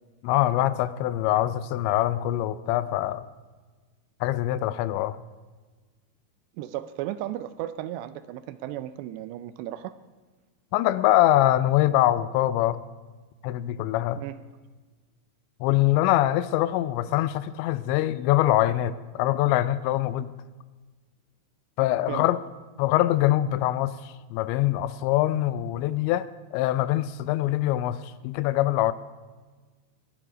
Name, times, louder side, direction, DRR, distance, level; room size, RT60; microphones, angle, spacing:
voice 1, 0.2-3.3 4.2-5.2 10.7-12.8 13.4-14.2 15.6-20.3 21.8-22.4 22.8-28.9, left 14 dB, 85° left, 15 dB, 2.8 m, -24 dB
voice 2, 6.6-9.9 14.2-14.4 22.1-22.3, right 13 dB, 80° right, 13 dB, 2.6 m, -35 dB
20.5 x 11.0 x 5.0 m, 1.4 s
omnidirectional pair, 5.3 m